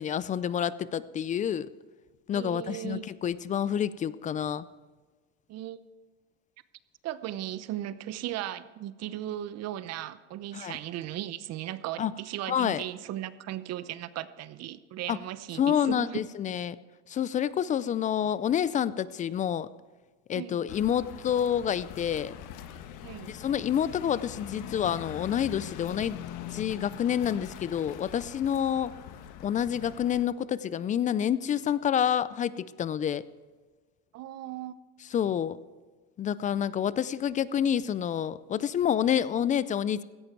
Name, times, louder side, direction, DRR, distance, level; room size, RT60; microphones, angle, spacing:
voice 1, 0.0-1.7 2.3-4.6 10.5-10.8 12.0-12.1 12.5-12.8 15.1-15.2 15.6-16.8 17.1-19.7 20.3-22.3 23.3-28.9 29.4-33.2 35.1-35.6 36.2-40.0, left 9 dB, 20° left, 18 dB, 0.3 m, -28 dB
voice 2, 2.3-3.0 5.5-5.8 7.0-16.2 18.2-18.3 20.3-20.6 23.0-23.4 28.7-28.9 34.1-34.7, right 13 dB, 45° right, 15 dB, 0.8 m, -37 dB
sound 1, 20.7-30.2, left 10 dB, 55° left, 1.4 m, -43 dB
16.5 x 14.0 x 4.6 m, 1.3 s
supercardioid pair, 120°, 37 cm